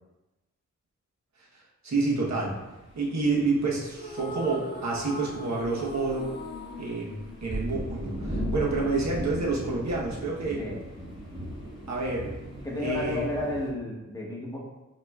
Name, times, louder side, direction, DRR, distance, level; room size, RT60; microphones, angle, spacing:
voice 1, 1.5-2.6 2.9-6.4 6.8-10.6 11.9-12.3 12.7-13.4, right 3 dB, 60° right, -4 dB, 1.1 m, -29 dB
sound 1, 2.4-13.7, equal, 40° right, 1.3 m, -38 dB
sound 2, 3.9-8.3, left 1 dB, 35° left, 0.4 m, -40 dB
voice 2, 12.6-14.6, left 1 dB, 10° left, -3 dB, 1.0 m, -32 dB
5.6 x 3.0 x 2.4 m, 1.0 s
wide cardioid pair, 115°, 31 cm